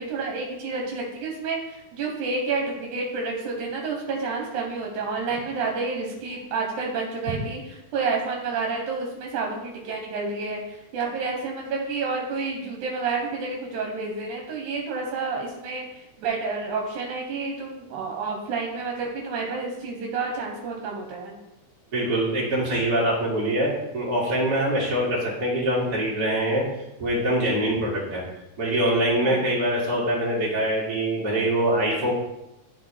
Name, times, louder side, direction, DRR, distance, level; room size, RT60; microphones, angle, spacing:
voice 1, 0.0-7.6 7.9-21.4 29.2-29.4, right 4 dB, 80° right, 0 dB, 2.4 m, -29 dB
voice 2, 21.9-26.6 27.0-28.2 28.6-32.1, right 1 dB, 35° right, -6 dB, 2.5 m, -24 dB
12.0 x 4.1 x 3.3 m, 0.92 s
omnidirectional pair, 3.5 m